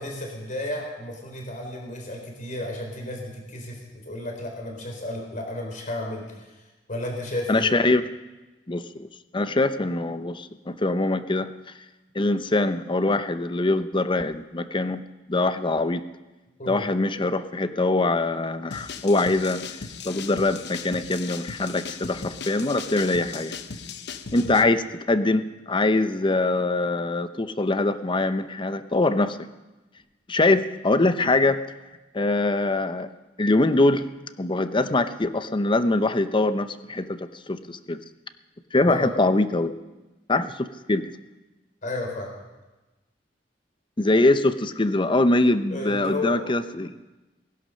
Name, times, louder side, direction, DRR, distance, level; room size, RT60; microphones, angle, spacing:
voice 1, 0.0-6.5 6.9-7.7 16.6-16.8 24.6-24.7 38.8-39.1 41.8-42.3 45.7-46.4, left 1 dB, 45° left, 1 dB, 4.2 m, -33 dB
voice 2, 7.5-8.0 8.7-11.5 12.1-15.0 15.3-16.0 16.7-19.6 20.0-23.5 24.3-29.4 30.3-31.6 32.1-33.1 33.4-34.0 34.4-38.0 38.7-39.7 40.3-41.1 44.0-46.9, left 2 dB, 25° left, 11 dB, 0.7 m, -23 dB
sound 1, 18.7-24.6, left 5 dB, 65° left, 0.9 m, -37 dB
19.5 x 11.0 x 6.4 m, 1.1 s
head